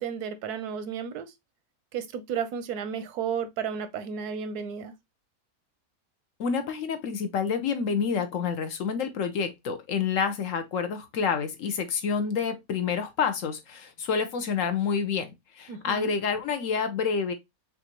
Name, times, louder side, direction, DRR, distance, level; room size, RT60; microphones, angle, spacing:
voice 1, 0.0-1.3 1.9-4.9 15.7-16.1, right 7 dB, 90° right, 1.2 m, -33 dB
voice 2, 6.4-17.3, left 6 dB, 65° left, 1.0 m, -28 dB
5.8 x 2.6 x 2.9 m
omnidirectional pair, 1.6 m